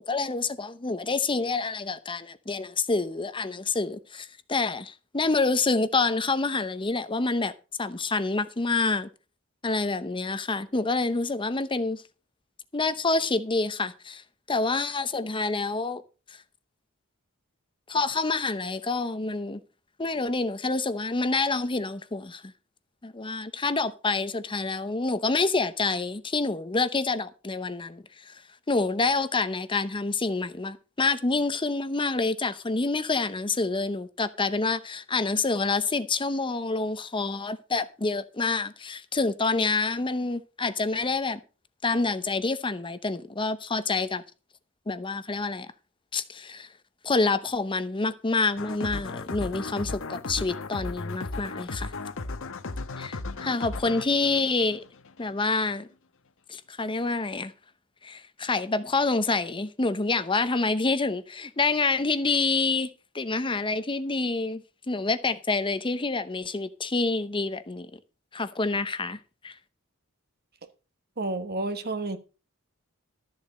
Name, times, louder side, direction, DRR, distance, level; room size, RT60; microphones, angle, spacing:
voice 1, 0.0-7.5 7.8-9.1 9.6-12.0 12.7-14.2 14.5-16.0 16.3-16.4 17.9-19.6 20.0-22.4 23.0-28.4 28.7-41.4 41.8-44.2 44.9-45.7 46.1-46.7 47.0-51.9 53.0-54.8 55.2-55.9 56.5-57.5 58.0-62.9 63.1-67.9 68.3-69.2 69.4-69.5, left 3 dB, 25° left, 0.8 m, -27 dB
sound 1, 48.6-55.3, left 3 dB, 65° left, 1.0 m, -36 dB
voice 2, 71.2-72.2, right 2 dB, 50° right, 1.3 m, -30 dB
13.0 x 7.3 x 5.2 m
head